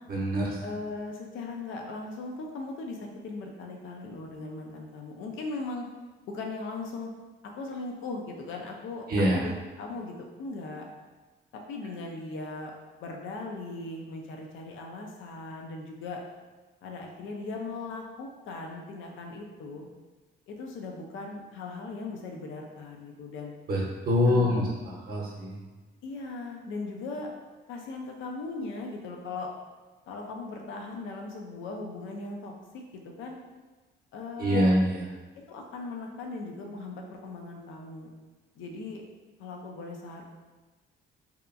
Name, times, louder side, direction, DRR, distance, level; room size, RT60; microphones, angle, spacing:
voice 1, 0.1-0.6 9.1-9.4 23.7-25.6 34.4-35.1, equal, 50° right, -3 dB, 0.7 m, -25 dB
voice 2, 0.6-5.9 6.3-7.1 7.4-10.8 11.5-12.7 13.0-16.2 16.8-19.9 20.5-23.5 24.3-24.8 26.0-27.3 27.7-29.5 30.1-33.4 34.1-34.8 35.3-38.1 38.6-39.0 39.4-40.2, left 3 dB, 80° left, 2 dB, 0.5 m, -38 dB
2.8 x 2.2 x 2.4 m, 1.2 s
cardioid pair, 90°, 20 cm